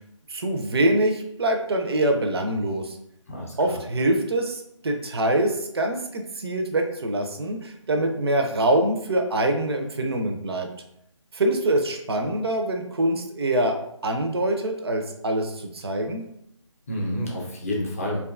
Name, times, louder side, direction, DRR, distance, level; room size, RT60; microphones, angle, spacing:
voice 1, 0.3-3.0 3.6-10.7 11.3-13.7 14.0-16.2, right 1 dB, 50° right, 4 dB, 0.4 m, -24 dB
voice 2, 3.3-3.8 16.9-18.2, left 1 dB, 25° left, -3 dB, 0.5 m, -29 dB
2.6 x 2.3 x 2.4 m, 0.76 s
figure-of-eight pair, 165°, 17 cm